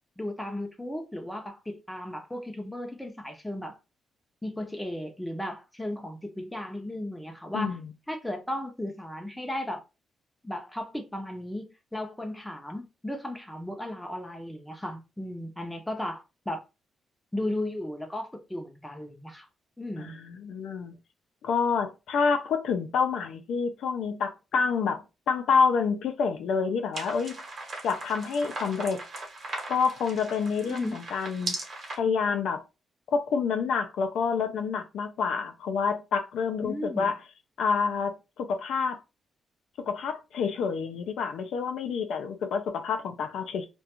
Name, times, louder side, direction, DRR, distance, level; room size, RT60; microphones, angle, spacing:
voice 1, 0.2-3.8 4.4-7.8 8.1-9.8 10.4-16.6 17.3-19.5 19.8-20.2 30.6-31.0 36.6-37.2, left 1 dB, 5° left, 0.5 m, -35 dB
voice 2, 7.5-7.9 20.0-20.9 21.4-27.3 27.8-29.0 29.7-31.5 32.0-32.6 33.1-37.2 37.6-39.0 39.9-43.7, left 5 dB, 80° left, 0.4 m, -28 dB
sound 1, 26.9-32.0, right 2 dB, 50° right, 1.0 m, -38 dB
2.4 x 2.2 x 2.8 m
cardioid pair, 120°, 0 cm